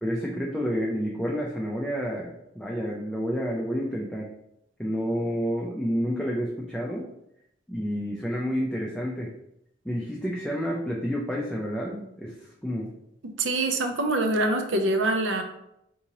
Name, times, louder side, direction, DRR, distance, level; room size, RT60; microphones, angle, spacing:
voice 1, 0.0-4.4 4.8-7.1 7.7-9.3 9.8-12.9, equal, 5° left, -3 dB, 0.3 m, -29 dB
voice 2, 13.2-15.4, right 2 dB, 80° right, 5 dB, 0.5 m, -25 dB
3.7 x 2.7 x 2.9 m, 0.81 s
head